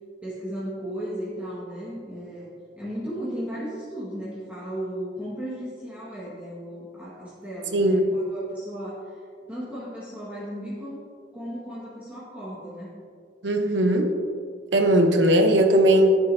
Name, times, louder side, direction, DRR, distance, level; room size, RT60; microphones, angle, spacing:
voice 1, 0.2-9.2 9.5-11.0 11.3-12.9, equal, 10° right, -9 dB, 1.7 m, -35 dB
voice 2, 7.7-8.1 13.4-14.1 14.7-16.2, right 1 dB, 85° right, 5 dB, 1.0 m, -19 dB
9.7 x 9.3 x 2.8 m, 2.2 s
head